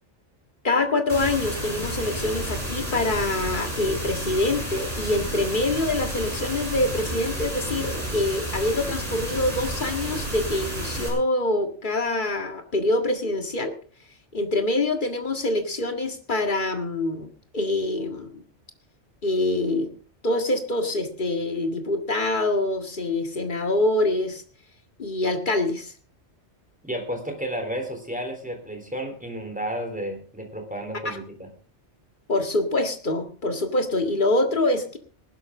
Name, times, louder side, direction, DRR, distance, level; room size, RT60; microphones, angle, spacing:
voice 1, 0.6-13.7 14.3-17.3 17.5-18.4 19.2-19.9 20.2-24.4 25.0-25.9 31.0-31.2 32.3-35.0, left 2 dB, 45° left, 5 dB, 2.0 m, -25 dB
sound 1, 1.1-11.1, equal, 30° right, 6.2 m, -31 dB
voice 2, 26.8-31.5, equal, 5° right, 5 dB, 3.6 m, -32 dB
19.0 x 12.0 x 3.7 m, 0.42 s
omnidirectional pair, 1.2 m